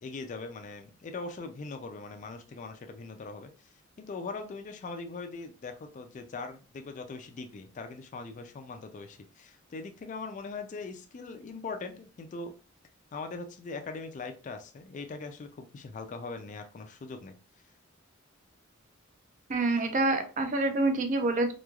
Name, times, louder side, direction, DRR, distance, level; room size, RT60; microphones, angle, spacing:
voice 1, 0.0-3.5 4.0-12.5 13.1-17.4, left 3 dB, 35° left, 6 dB, 0.3 m, -41 dB
voice 2, 19.5-21.5, right 2 dB, 40° right, 7 dB, 0.4 m, -27 dB
3.0 x 2.2 x 2.3 m, 0.36 s
head